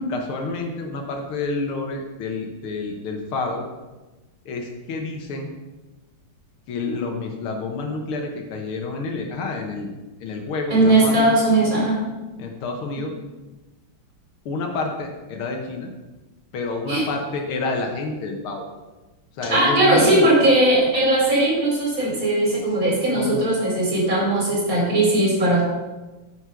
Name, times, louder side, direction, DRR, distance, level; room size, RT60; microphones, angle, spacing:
voice 1, 0.1-3.6 4.5-5.5 6.7-9.9 10.2-11.3 12.4-13.1 14.5-15.9 16.5-18.7 19.4-20.2 23.1-23.4, left 3 dB, 85° left, 2 dB, 2.0 m, -28 dB
voice 2, 10.7-12.0 16.9-17.1 19.5-25.7, right 2 dB, 40° right, -3 dB, 4.0 m, -18 dB
9.5 x 6.6 x 5.8 m, 1.1 s
omnidirectional pair, 2.3 m